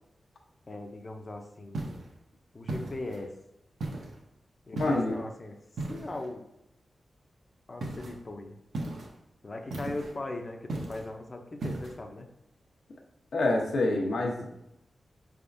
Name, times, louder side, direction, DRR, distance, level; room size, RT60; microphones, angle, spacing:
voice 1, 0.7-2.0 2.5-3.3 4.7-5.6 5.9-6.5 7.7-8.6 9.4-12.3, left 2 dB, 30° left, 4 dB, 0.5 m, -39 dB
sound 1, 1.7-2.1 2.7-3.2 3.8-4.2 4.8-5.2 5.8-6.3 7.8-8.2 8.7-9.2 9.7-10.2 10.7-11.1 11.6-12.0, right 2 dB, 85° right, 0.7 m, -36 dB
voice 2, 4.7-5.2 13.3-14.5, left 2 dB, 75° left, 0 dB, 0.9 m, -26 dB
5.0 x 3.5 x 2.6 m, 0.83 s
wide cardioid pair, 125°, 0 cm